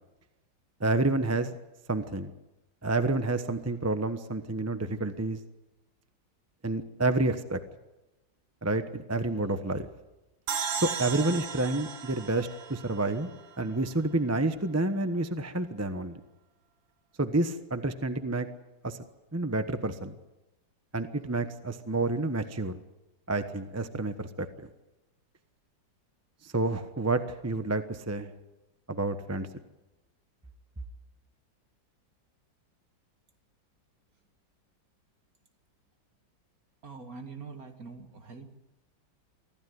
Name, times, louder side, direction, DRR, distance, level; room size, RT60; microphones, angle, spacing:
voice 1, 0.8-1.5 1.9-2.3 2.8-5.4 6.6-7.6 8.6-9.9 10.8-16.2 17.2-18.5 18.8-19.0 19.3-20.1 20.9-22.8 23.3-24.5 26.4-28.3 28.9-29.5, right 2 dB, 10° right, 9 dB, 0.8 m, -29 dB
sound 1, 10.5-13.8, right 7 dB, 80° right, 1.9 m, -36 dB
voice 2, 36.8-38.6, right 4 dB, 50° right, 5 dB, 2.6 m, -44 dB
25.0 x 15.5 x 9.5 m, 1.0 s
omnidirectional pair, 2.1 m